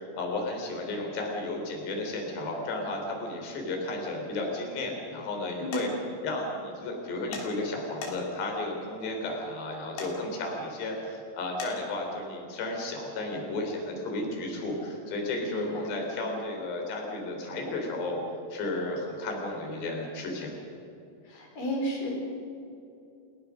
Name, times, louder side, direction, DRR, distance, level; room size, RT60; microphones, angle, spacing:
voice 1, 0.1-5.9 6.2-18.2 18.5-20.5, left 2 dB, 65° left, 1 dB, 5.8 m, -33 dB
voice 2, 5.6-5.9 15.4-16.0 21.2-22.1, right 1 dB, 45° left, 0 dB, 6.0 m, -33 dB
sound 1, 5.7-5.9 7.3-7.5 8.0-8.4 10.0-10.1 11.6-11.7, left 4 dB, 85° left, 5.7 m, -37 dB
29.5 x 17.0 x 6.3 m, 2.7 s
omnidirectional pair, 5.4 m